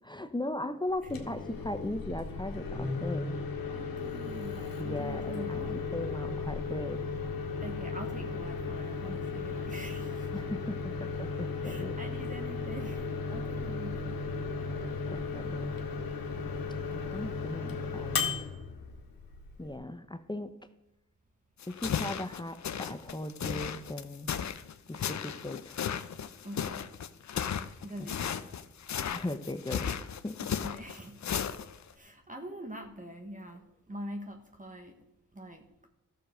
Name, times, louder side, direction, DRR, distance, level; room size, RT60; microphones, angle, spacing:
voice 1, 0.0-3.4 4.5-5.6 5.9-7.0 10.3-12.0 15.1-15.8 16.9-18.5 19.6-20.5 21.7-24.3 24.9-25.8 28.0-28.1 29.1-30.5, left 1 dB, 15° left, 9 dB, 0.8 m, -38 dB
Microwave oven, 0.9-19.7, left 4 dB, 80° left, 1.4 m, -35 dB
voice 2, 3.7-5.9 7.6-10.3 11.6-14.3 26.4-26.9 27.8-28.6 30.6-31.3 31.5-35.0 35.3-35.7, right 1 dB, 25° right, 3 dB, 1.2 m, -44 dB
sound 1, 21.6-31.9, left 8 dB, 55° left, 0.7 m, -35 dB
13.0 x 6.8 x 5.1 m, 0.90 s
cardioid pair, 50°, 34 cm